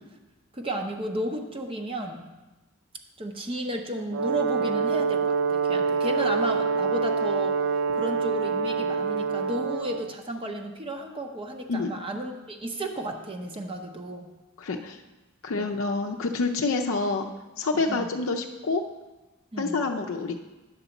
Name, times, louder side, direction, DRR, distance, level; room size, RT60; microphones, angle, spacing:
voice 1, 0.5-2.3 3.2-7.6 7.9-14.3 15.5-15.7 17.7-18.1 19.5-19.9, right 1 dB, 25° right, 3 dB, 0.7 m, -33 dB
Brass instrument, 4.1-10.1, right 5 dB, 55° right, 0.4 m, -26 dB
voice 2, 14.6-15.0 15.4-17.3 17.6-18.8 19.6-20.4, left 3 dB, 65° left, 3 dB, 0.5 m, -27 dB
9.9 x 4.0 x 6.9 m, 1.1 s
head